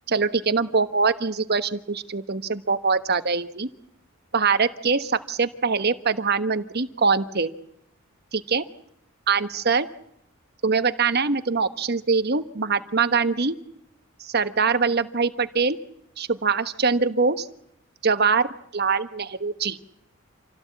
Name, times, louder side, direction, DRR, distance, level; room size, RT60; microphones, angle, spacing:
voice 1, 0.1-3.7 4.3-7.5 8.3-8.6 9.3-9.9 10.6-13.5 14.2-15.8 16.2-17.5 18.0-18.5 18.7-19.9, right 5 dB, 50° right, 11 dB, 1.3 m, -23 dB
27.5 x 17.0 x 8.5 m, 0.77 s
head